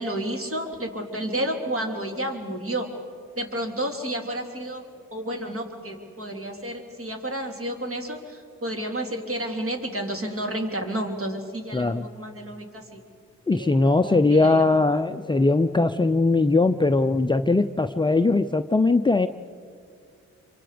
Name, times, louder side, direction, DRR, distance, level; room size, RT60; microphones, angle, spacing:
voice 1, 0.0-2.9 3.4-4.8 5.1-13.0 13.5-14.7 14.9-15.1, right 1 dB, 45° right, 2 dB, 3.4 m, -31 dB
voice 2, 11.7-12.0 13.5-19.3, left 3 dB, 15° left, 8 dB, 0.5 m, -20 dB
26.5 x 24.0 x 5.1 m, 2.3 s
cardioid pair, 80°, 31 cm